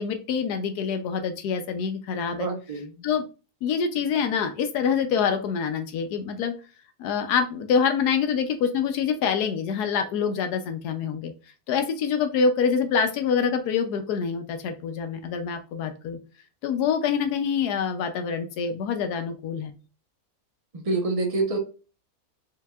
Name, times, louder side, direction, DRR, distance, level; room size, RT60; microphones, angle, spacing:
voice 1, 0.0-2.5 3.0-3.2 3.6-6.5 7.0-11.3 11.7-16.2 16.6-19.7, left 6 dB, 85° left, 7 dB, 1.2 m, -26 dB
voice 2, 2.3-3.0 20.7-21.6, right 3 dB, 30° right, 3 dB, 0.7 m, -27 dB
4.6 x 3.4 x 2.3 m, 0.34 s
omnidirectional pair, 1.7 m